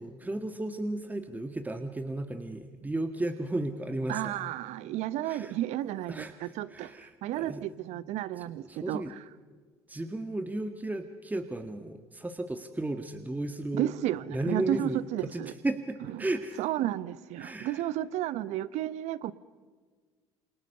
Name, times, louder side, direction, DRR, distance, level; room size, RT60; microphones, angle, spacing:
voice 1, 0.0-4.3 5.2-5.6 6.1-7.6 8.6-9.1 9.9-13.9 14.3-16.6 17.4-17.8, right 2 dB, 10° right, 7 dB, 1.9 m, -34 dB
voice 2, 4.1-9.0 13.7-15.5 16.6-19.3, right 13 dB, 60° right, 17 dB, 1.0 m, -32 dB
28.0 x 28.0 x 6.8 m, 1.5 s
hypercardioid pair, 60°, 13 cm